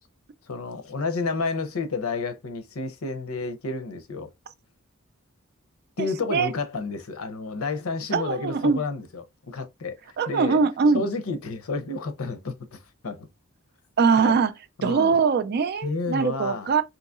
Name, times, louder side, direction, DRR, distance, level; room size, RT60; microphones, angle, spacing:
voice 1, 0.5-4.3 6.0-10.6 10.9-13.3 14.2-14.4 14.8-15.2 15.8-16.7, left 3 dB, 80° left, 0.7 m, -30 dB
voice 2, 6.0-6.5 8.1-8.8 10.2-11.0 14.0-14.5 14.8-16.8, right 5 dB, 50° right, 0.4 m, -22 dB
3.8 x 2.8 x 2.3 m
head